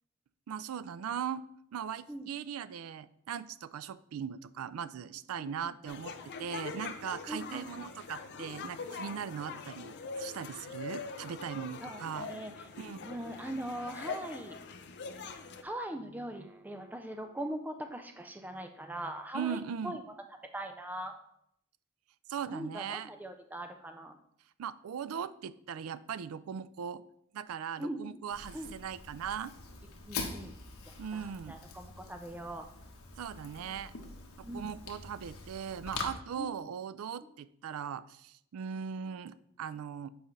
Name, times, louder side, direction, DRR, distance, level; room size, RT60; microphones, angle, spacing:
voice 1, 0.5-1.5 1.7-6.1 6.4-12.3 12.8-13.1 19.3-20.0 22.3-23.1 24.6-27.0 27.3-29.5 31.0-31.6 33.2-33.9 34.5-40.1, right 8 dB, 85° right, 15 dB, 0.4 m, -39 dB
sound 1, 5.9-15.6, left 4 dB, 55° left, 0.5 m, -43 dB
voice 2, 7.3-7.9 11.8-12.7 13.0-14.6 15.6-20.0 20.4-21.2 22.5-24.2 27.8-28.1 28.5-28.8 30.1-30.5 30.8-32.7 34.4-34.7 36.4-36.5, right 1 dB, 10° right, 6 dB, 0.4 m, -41 dB
Fire, 28.3-36.1, left 4 dB, 90° left, 1.1 m, -44 dB
7.9 x 4.8 x 3.2 m, 0.72 s
head